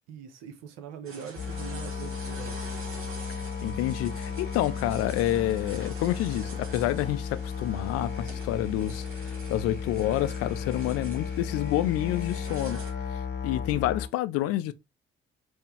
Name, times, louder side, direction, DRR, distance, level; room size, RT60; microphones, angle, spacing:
voice 1, 0.1-2.6, right 7 dB, 65° right, 0.8 m, -42 dB
sound 1, 1.1-12.9, right 4 dB, 45° right, 1.3 m, -46 dB
Musical instrument, 1.4-14.1, left 6 dB, 35° left, 0.9 m, -34 dB
voice 2, 3.6-12.8 13.4-14.7, left 13 dB, 55° left, 0.4 m, -28 dB
4.4 x 2.1 x 3.1 m
figure-of-eight pair, 45°, 30 cm